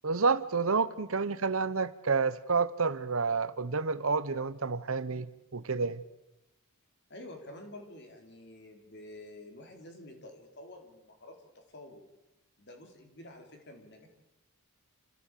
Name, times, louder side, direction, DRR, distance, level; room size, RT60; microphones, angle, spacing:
voice 1, 0.0-5.3 5.5-6.0, right 4 dB, 65° right, 0.9 m, -29 dB
voice 2, 7.1-12.0 12.6-14.1, left 1 dB, 50° left, 4.0 m, -49 dB
28.0 x 15.0 x 8.4 m
head